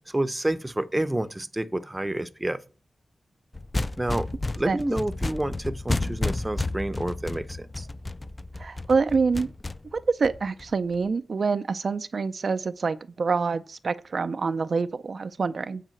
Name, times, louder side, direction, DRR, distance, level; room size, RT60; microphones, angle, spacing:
voice 1, 0.1-2.6 4.0-4.3 4.5-7.9, right 1 dB, 15° right, 0.7 m, -29 dB
sound 1, 3.5-11.0, left 2 dB, 25° left, 0.4 m, -31 dB
voice 2, 8.6-9.5 9.9-15.8, right 4 dB, 60° right, 0.4 m, -26 dB
9.2 x 4.8 x 7.6 m
wide cardioid pair, 100°, 0 cm